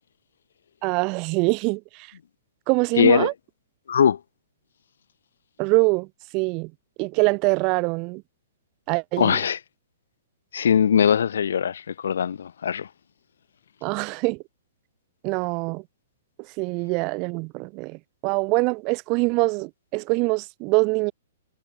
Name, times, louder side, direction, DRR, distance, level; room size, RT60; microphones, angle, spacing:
voice 1, 0.8-2.1 2.7-3.3 5.6-6.1 6.3-6.7 7.0-8.2 8.9-9.4 13.8-14.4 15.2-15.8 16.6-21.1, right 29 dB, 25° right, 7.7 m, -24 dB
voice 2, 3.0-3.3 3.9-4.2 9.2-9.6 10.5-12.9, left 8 dB, 75° left, 6.4 m, -20 dB
hypercardioid pair, 175°, 0 cm